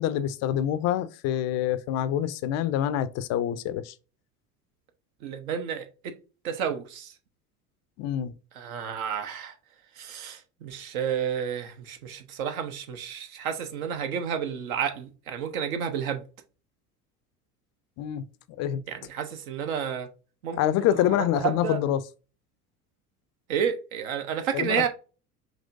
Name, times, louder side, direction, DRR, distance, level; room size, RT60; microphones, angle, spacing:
voice 1, 0.0-3.9 8.0-8.3 18.0-18.2 18.6-18.8 20.6-22.0 24.5-24.9, left 11 dB, 35° left, 0.4 m, -26 dB
voice 2, 5.2-6.1 6.4-7.1 8.5-9.5 10.0-16.2 18.9-20.1 20.4-20.6 20.9-21.8 23.5-24.9, right 8 dB, 65° right, 1.0 m, -31 dB
5.2 x 3.0 x 2.6 m
figure-of-eight pair, 75°, 46 cm